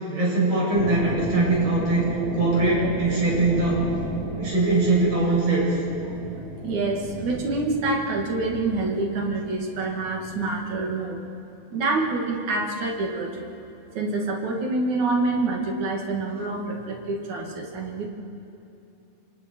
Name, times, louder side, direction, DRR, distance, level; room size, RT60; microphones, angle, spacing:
voice 1, 0.1-2.1 2.3-3.8 4.3-5.7, right 2 dB, 55° right, -6 dB, 8.8 m, -22 dB
sound 1, 0.7-10.6, right 1 dB, 40° right, 4.4 m, -35 dB
voice 2, 6.4-11.3 11.7-13.5 14.0-18.1, right 3 dB, 75° right, 0 dB, 3.7 m, -27 dB
29.5 x 26.0 x 4.6 m, 2.8 s
omnidirectional pair, 3.4 m